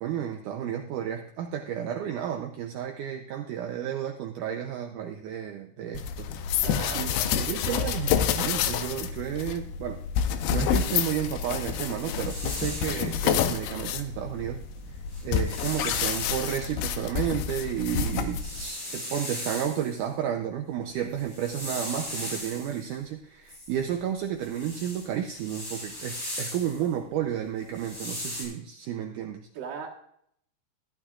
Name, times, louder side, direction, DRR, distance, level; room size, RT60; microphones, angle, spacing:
voice 1, 0.0-6.6 6.9-7.1 7.4-10.0 10.5-14.6 15.2-29.5, right 9 dB, 85° right, 3 dB, 1.8 m, -32 dB
sound 1, 5.9-18.7, left 8 dB, 90° left, 2.6 m, -28 dB
voice 2, 6.6-8.0 29.5-29.9, right 8 dB, 65° right, -5 dB, 2.8 m, -38 dB
sound 2, 11.9-13.2 14.6-14.7 15.0-16.5 17.0-20.0 21.0-22.9 23.5-26.9 27.6-28.4, left 1 dB, 25° left, 3.7 m, -38 dB
15.0 x 11.5 x 2.4 m, 0.68 s
omnidirectional pair, 4.5 m